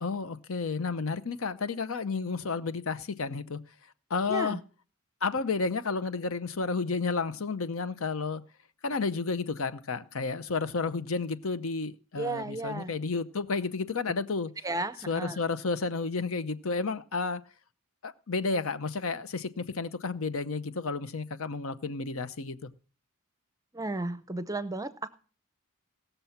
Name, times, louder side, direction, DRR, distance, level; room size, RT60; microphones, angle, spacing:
voice 1, 0.0-3.6 4.1-4.6 5.2-8.4 8.8-14.5 15.1-17.4 18.0-22.6, left 4 dB, 70° left, 0.7 m, -31 dB
voice 2, 4.3-4.6 12.2-12.9 14.6-15.4 23.7-25.2, right 2 dB, 15° right, 0.6 m, -34 dB
17.5 x 6.8 x 5.7 m
head